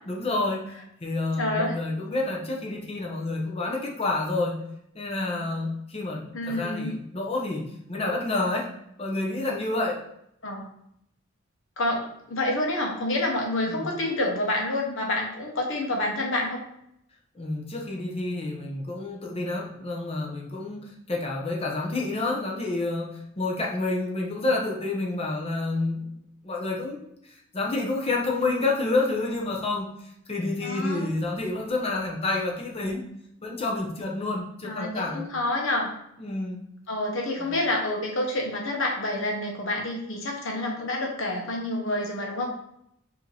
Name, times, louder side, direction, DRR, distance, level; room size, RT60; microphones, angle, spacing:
voice 1, 0.1-0.6 1.0-4.6 4.9-8.7 9.0-10.0 13.7-13.8 17.3-26.1 26.4-27.0 27.5-29.9 30.3-33.0 33.4-35.3 36.2-36.6 37.4-37.6, left 2 dB, 30° left, -1 dB, 0.7 m, -29 dB
voice 2, 1.4-1.8 6.3-6.9 10.4-10.6 11.8-16.6 30.6-31.1 34.6-35.9 36.9-42.5, left 1 dB, 65° left, 1 dB, 1.0 m, -28 dB
4.8 x 2.8 x 3.3 m, 0.75 s
head